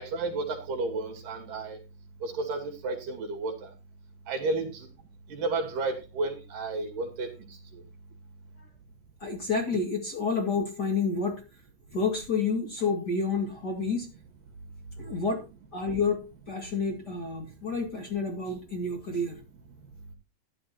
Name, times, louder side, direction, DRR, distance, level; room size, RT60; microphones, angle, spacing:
voice 1, 0.0-1.8 2.2-3.5 4.3-4.9 5.3-7.3, right 3 dB, 70° right, 4 dB, 4.1 m, -32 dB
voice 2, 9.2-11.4 11.9-14.1 15.0-15.4 15.7-16.2 16.5-19.4, left 4 dB, 35° left, 2 dB, 2.2 m, -29 dB
14.5 x 11.0 x 2.8 m, 0.29 s
omnidirectional pair, 4.0 m